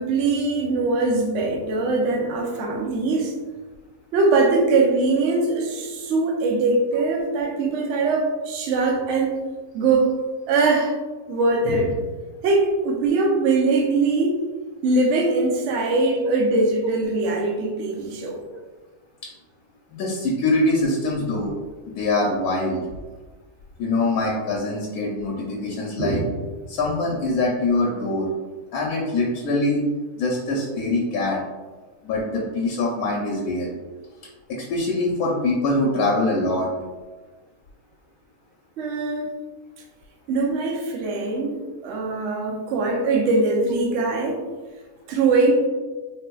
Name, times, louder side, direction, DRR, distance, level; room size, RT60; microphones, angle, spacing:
voice 1, 0.0-3.3 4.1-9.4 9.7-10.2 10.5-10.9 11.3-12.0 12.4-14.4 14.8-18.4 26.0-26.3 38.8-39.3 40.3-44.4 45.1-45.7, right 3 dB, 65° right, 1 dB, 0.8 m, -22 dB
voice 2, 19.9-21.5 21.9-22.8 23.8-26.2 26.7-28.3 28.7-29.8 30.2-31.4 32.0-33.7 34.5-36.7, left 2 dB, 80° left, -2 dB, 1.1 m, -23 dB
3.9 x 2.6 x 2.2 m, 1.3 s
omnidirectional pair, 1.6 m